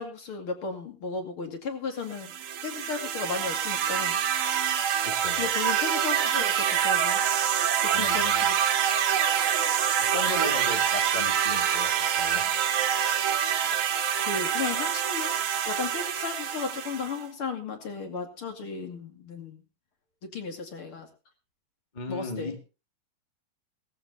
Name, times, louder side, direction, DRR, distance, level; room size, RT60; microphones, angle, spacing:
voice 1, 0.0-2.3 2.6-4.2 5.4-8.6 12.3-12.5 14.3-19.6 20.2-21.1 22.1-22.5, left 5 dB, 40° left, 2.4 m, -35 dB
sound 1, 2.1-17.2, right 9 dB, 60° right, 2.0 m, -26 dB
voice 2, 5.0-5.5 7.9-8.5 10.0-12.5 21.9-22.6, left 4 dB, 75° left, 0.4 m, -36 dB
sound 2, 11.5-15.7, right 8 dB, 90° right, 3.6 m, -42 dB
18.5 x 15.0 x 2.7 m
omnidirectional pair, 4.8 m